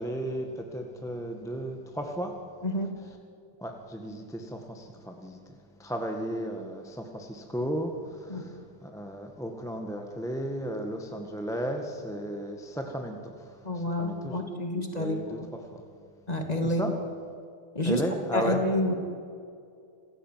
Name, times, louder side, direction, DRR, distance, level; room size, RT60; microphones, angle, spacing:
voice 1, 0.0-2.3 3.6-14.5 14.9-15.8 16.6-16.9 17.8-18.6, right 1 dB, ahead, 3 dB, 1.4 m, -35 dB
voice 2, 13.6-15.5 16.3-16.8 17.7-18.0 18.3-18.9, left 1 dB, 20° left, 4 dB, 2.5 m, -29 dB
27.0 x 15.5 x 9.2 m, 2.5 s
omnidirectional pair, 2.3 m